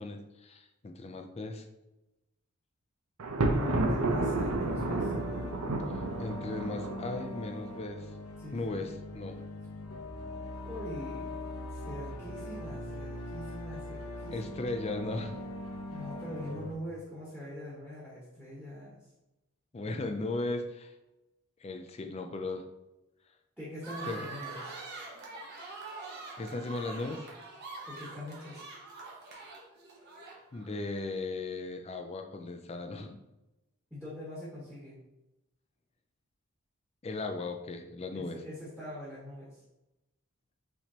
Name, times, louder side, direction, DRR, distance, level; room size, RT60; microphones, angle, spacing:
voice 1, 0.0-1.7 6.2-8.1 8.5-9.4 14.3-15.4 19.7-20.9 21.6-22.6 24.1-24.2 26.4-27.3 30.5-33.2 37.0-38.4, left 2 dB, 30° left, 5 dB, 0.4 m, -37 dB
Thunder, 3.2-7.3, right 2 dB, 85° right, 0.6 m, -31 dB
sound 1, 3.5-16.8, left 1 dB, 80° left, 0.8 m, -41 dB
voice 2, 3.5-5.1 8.4-8.7 10.6-11.4 11.7-14.5 15.9-19.1 23.6-24.7 27.8-28.7 33.9-35.0 38.1-39.6, left 1 dB, 5° right, -8 dB, 1.2 m, -43 dB
sound 2, 23.8-30.7, right 3 dB, 45° right, 1.0 m, -44 dB
5.8 x 3.3 x 2.8 m, 0.98 s
head